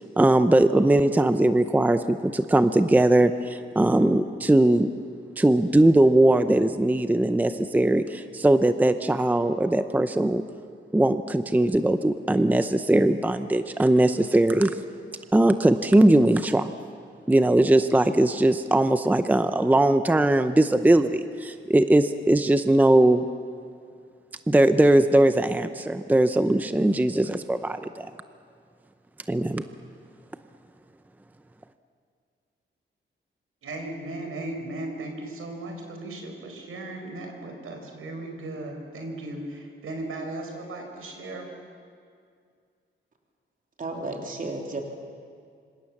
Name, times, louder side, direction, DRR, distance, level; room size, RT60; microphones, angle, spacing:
voice 1, 0.2-4.9 5.4-10.4 10.9-14.8 15.3-16.7 17.3-23.2 24.5-28.1 29.3-29.6, right 1 dB, 10° right, 10 dB, 0.7 m, -20 dB
voice 2, 33.6-41.5, right 2 dB, 90° right, 3 dB, 4.7 m, -36 dB
voice 3, 43.8-44.8, right 2 dB, 40° right, 2 dB, 3.2 m, -32 dB
26.5 x 26.0 x 7.3 m, 2.3 s
wide cardioid pair, 160°, 21 cm